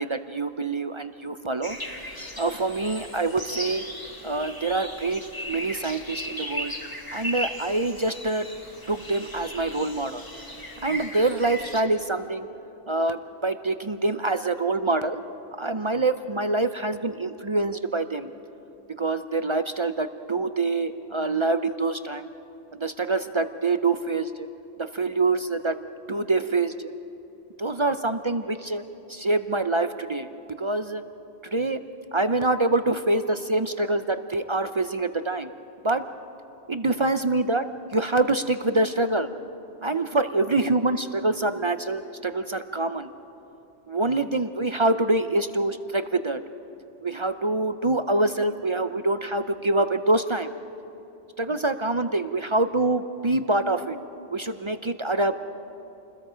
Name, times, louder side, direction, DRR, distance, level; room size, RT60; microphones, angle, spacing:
voice 1, 0.0-1.8 2.4-3.8 4.2-6.7 7.1-8.5 8.9-10.2 10.8-12.5 12.9-15.2 15.6-18.3 18.9-22.3 22.7-24.5 24.8-25.8 26.1-26.9 27.6-28.8 29.1-31.0 31.4-31.8 32.1-35.5 35.8-36.1 36.7-39.3 39.8-43.1 43.9-46.4 47.0-50.5 51.4-54.0 54.3-55.4, right 2 dB, 35° right, 10 dB, 0.5 m, -25 dB
sound 1, 1.6-11.8, equal, 20° left, 1.6 m, -37 dB
29.0 x 21.0 x 5.0 m, 2.8 s
omnidirectional pair, 1.2 m